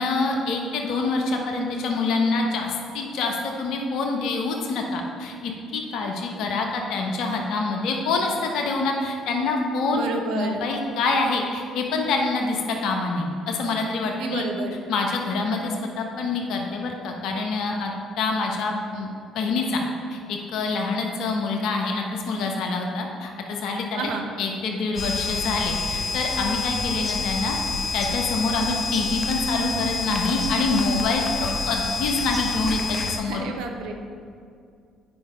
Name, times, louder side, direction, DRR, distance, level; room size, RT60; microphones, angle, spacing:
voice 1, 0.0-10.1 10.3-14.5 14.9-17.9 18.2-19.1 19.3-19.8 20.1-24.1 24.4-27.6 27.9-33.4, left 3 dB, 65° left, 1 dB, 1.1 m, -26 dB
voice 2, 9.9-10.6 14.0-14.8 23.9-24.3 33.2-33.9, right 3 dB, 70° right, 3 dB, 0.9 m, -31 dB
sound 1, 25.0-33.2, left 3 dB, 30° left, 1.0 m, -28 dB
9.1 x 5.5 x 5.0 m, 2.3 s
hypercardioid pair, 55°, 0 cm